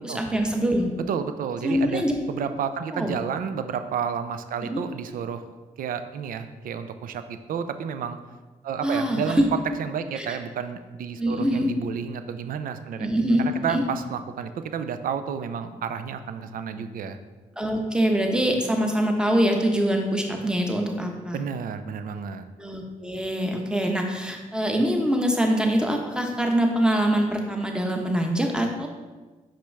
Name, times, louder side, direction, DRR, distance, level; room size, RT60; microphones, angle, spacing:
voice 1, 0.0-0.9 1.6-2.2 2.9-3.1 4.6-4.8 8.8-9.4 10.2-10.4 11.2-11.7 13.0-13.8 16.7-16.8 17.6-21.4 22.6-28.9, equal, 5° right, 2 dB, 1.1 m, -24 dB
voice 2, 1.1-5.4 5.8-8.2 8.6-13.1 13.4-17.2 21.3-22.5, right 7 dB, 70° right, 10 dB, 0.5 m, -31 dB
5.8 x 4.9 x 3.4 m, 1.3 s
supercardioid pair, 50°, 15 cm